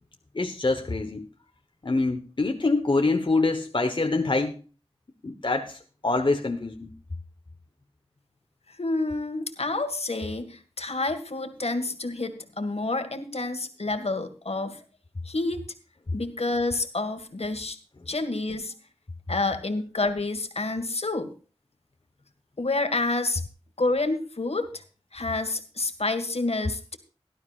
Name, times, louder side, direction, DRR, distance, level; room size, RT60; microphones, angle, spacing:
voice 1, 0.3-1.3 1.8-4.6 5.2-6.9, left 3 dB, 50° left, 5 dB, 1.1 m, -25 dB
voice 2, 8.7-14.8 15.2-15.7 16.1-17.8 18.1-18.7 19.3-21.3 22.6-23.4 23.8-24.8 25.1-27.0, left 2 dB, 75° left, 8 dB, 1.8 m, -28 dB
17.5 x 12.0 x 2.4 m, 0.36 s
wide cardioid pair, 60°, 11 cm